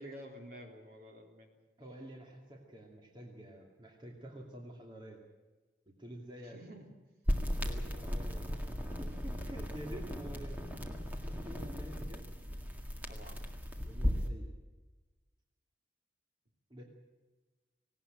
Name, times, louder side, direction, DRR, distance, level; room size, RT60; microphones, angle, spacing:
voice 1, 0.0-1.5 6.4-6.9 13.1-13.4, equal, 50° right, 3 dB, 3.5 m, -50 dB
voice 2, 1.8-5.2 5.9-6.6 7.6-8.4 8.9-10.6 11.1-12.3 13.8-14.5 16.7-16.8, equal, 25° right, 0 dB, 2.5 m, -49 dB
sound 1, 7.3-14.3, equal, 10° right, 1.9 m, -36 dB
18.5 x 18.0 x 8.9 m, 1.2 s
head